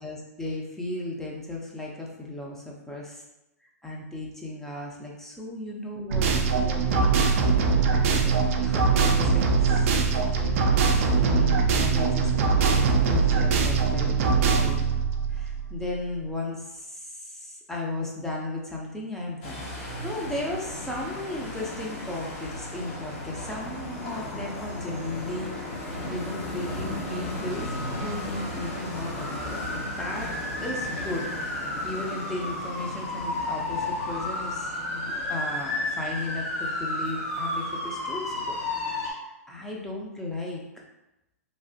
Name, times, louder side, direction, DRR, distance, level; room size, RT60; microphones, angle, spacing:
voice 1, 0.0-3.1 3.8-7.3 7.7-14.8 15.3-25.5 26.1-29.7 30.0-30.3 30.6-31.3 31.8-40.6, left 2 dB, 5° left, -2 dB, 0.5 m, -35 dB
sound 1, 6.1-16.0, right 5 dB, 55° right, 0.4 m, -22 dB
sound 2, 19.4-39.1, left 1 dB, 45° left, 1.0 m, -33 dB
3.1 x 2.0 x 2.7 m, 0.93 s
hypercardioid pair, 125°, 8 cm